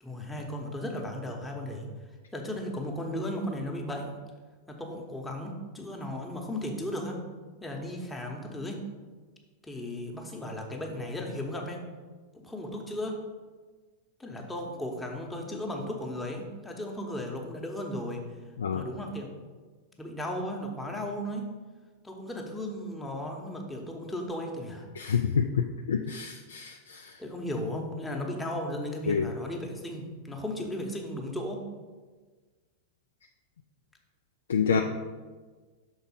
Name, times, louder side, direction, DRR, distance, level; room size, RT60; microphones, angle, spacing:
voice 1, 0.0-1.9 2.3-4.2 4.7-7.2 7.6-8.9 9.6-11.8 12.3-13.2 14.2-18.2 18.7-19.3 20.0-21.4 22.0-25.2 27.2-31.7 34.7-34.8, left 1 dB, 5° left, 1 dB, 0.9 m, -35 dB
voice 2, 25.0-27.1 29.1-29.3 34.5-34.8, left 6 dB, 70° left, 5 dB, 0.3 m, -28 dB
6.0 x 4.0 x 5.4 m, 1.4 s
figure-of-eight pair, 90°, 0 cm